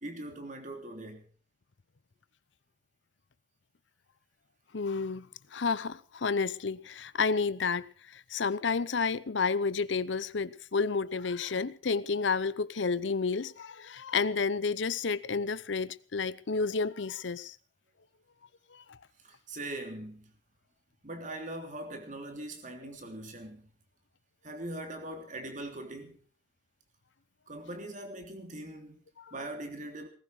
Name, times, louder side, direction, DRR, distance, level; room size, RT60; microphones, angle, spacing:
voice 1, 0.0-1.3 11.4-11.5 19.2-20.3 21.0-23.7 24.4-26.2 27.5-29.0 29.3-30.1, right 1 dB, 40° right, 3.2 m, -41 dB
voice 2, 4.7-5.3 5.5-17.6 18.7-19.0 29.2-29.3, left 4 dB, 75° left, 0.7 m, -31 dB
18.5 x 15.0 x 4.8 m
head